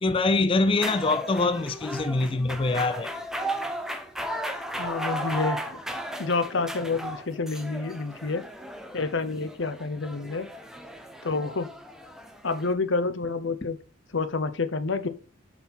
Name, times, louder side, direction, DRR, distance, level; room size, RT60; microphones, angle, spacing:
voice 1, 0.0-3.1, left 3 dB, 25° left, 0.4 m, -24 dB
sound 1, 0.7-12.7, equal, ahead, 0.7 m, -35 dB
voice 2, 4.8-5.8 6.2-8.4 8.9-10.5 11.2-11.7 12.4-13.8 14.1-15.1, left 3 dB, 60° left, 0.8 m, -28 dB
7.0 x 4.2 x 5.5 m
head